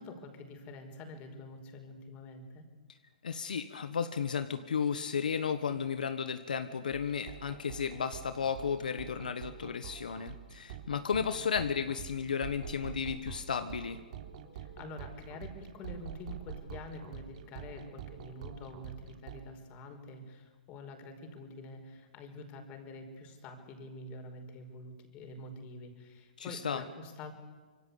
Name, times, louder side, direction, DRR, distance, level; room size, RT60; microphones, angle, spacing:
voice 1, 0.0-2.6 14.5-27.3, left 2 dB, 30° left, 5 dB, 5.2 m, -47 dB
voice 2, 3.2-14.0 26.4-26.8, left 6 dB, 80° left, 10 dB, 1.3 m, -34 dB
sound 1, 6.9-19.5, right 8 dB, 55° right, 3.2 m, -46 dB
26.0 x 23.5 x 8.5 m, 1.4 s
hypercardioid pair, 130°, 4 cm